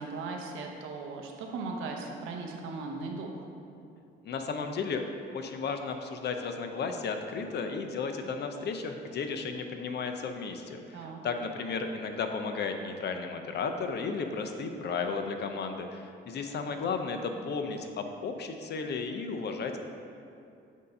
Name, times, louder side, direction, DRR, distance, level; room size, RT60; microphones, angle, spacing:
voice 1, 0.0-3.4 10.9-11.2, right 3 dB, 90° right, 1 dB, 0.8 m, -38 dB
voice 2, 4.2-5.0 5.3-19.8, left 4 dB, 60° left, 5 dB, 0.6 m, -34 dB
8.1 x 2.7 x 5.3 m, 2.5 s
cardioid pair, 90°, 20 cm